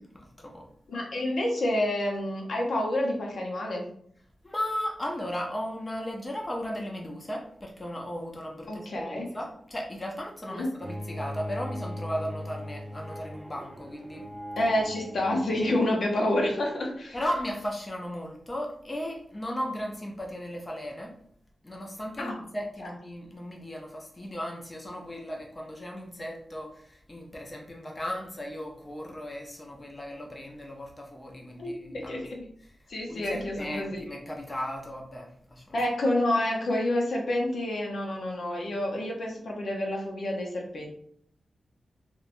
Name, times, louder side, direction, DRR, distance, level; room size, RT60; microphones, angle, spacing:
voice 1, 0.1-0.7 4.4-14.6 17.1-21.1 21.6-32.2 32.6-32.7 33.1-35.8, equal, 25° left, 1 dB, 0.5 m, -36 dB
voice 2, 0.9-3.9 8.7-9.3 10.5-10.7 14.6-17.2 22.2-22.3 22.8-22.9 31.6-32.5 32.9-34.0 35.7-40.9, left 1 dB, 70° left, -1 dB, 0.6 m, -28 dB
Bowed string instrument, 10.8-15.8, equal, 10° right, 0.7 m, -39 dB
3.0 x 2.1 x 2.5 m, 0.63 s
wide cardioid pair, 90°, 0 cm